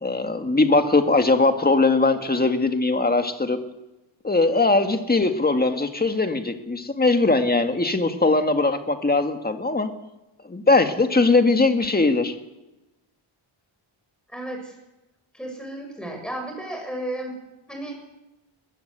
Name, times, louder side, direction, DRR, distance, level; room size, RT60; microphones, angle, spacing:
voice 1, 0.0-3.6 4.2-9.9 10.4-12.3, left 3 dB, 20° left, 7 dB, 1.9 m, -20 dB
voice 2, 14.3-14.8 15.3-17.3 17.7-18.0, right 1 dB, ahead, 2 dB, 7.0 m, -33 dB
21.5 x 21.0 x 8.2 m, 0.99 s
wide cardioid pair, 160°, 49 cm